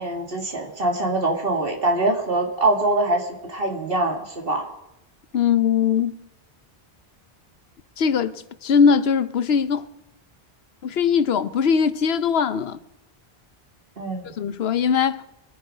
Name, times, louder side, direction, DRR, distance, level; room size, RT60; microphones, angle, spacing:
voice 1, 0.0-4.6 14.0-14.3, right 2 dB, 60° right, 2.6 m, -23 dB
voice 2, 5.3-6.2 8.0-9.9 10.8-12.8 14.4-15.2, left 6 dB, 75° left, 1.0 m, -20 dB
23.5 x 10.5 x 4.9 m
omnidirectional pair, 1.1 m